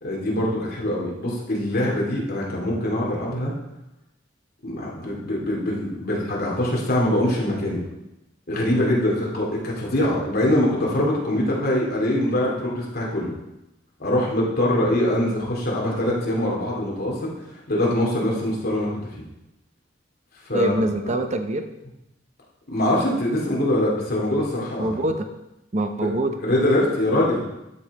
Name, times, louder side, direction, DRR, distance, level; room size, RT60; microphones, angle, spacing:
voice 1, 0.0-3.5 4.6-7.8 8.5-13.3 14.0-17.3 17.7-19.2 20.5-20.7 21.0-21.2 22.7-24.9 26.4-27.4, left 1 dB, 55° left, -3 dB, 2.4 m, -23 dB
voice 2, 20.5-21.7 24.8-25.3 25.7-26.4, right 1 dB, 40° right, 6 dB, 0.8 m, -24 dB
12.0 x 5.5 x 4.1 m, 0.92 s
head